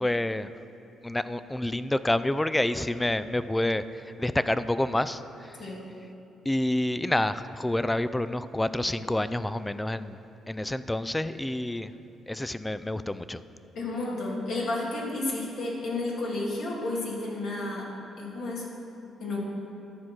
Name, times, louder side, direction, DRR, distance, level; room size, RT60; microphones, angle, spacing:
voice 1, 0.0-0.5 1.0-5.7 6.5-10.2 10.5-11.9 12.3-13.4, left 1 dB, 10° left, 14 dB, 0.3 m, -28 dB
voice 2, 13.8-17.8 18.2-18.7 19.2-19.4, left 2 dB, 70° left, -4 dB, 2.3 m, -31 dB
12.5 x 4.7 x 6.0 m, 2.9 s
cardioid pair, 90°, 0 cm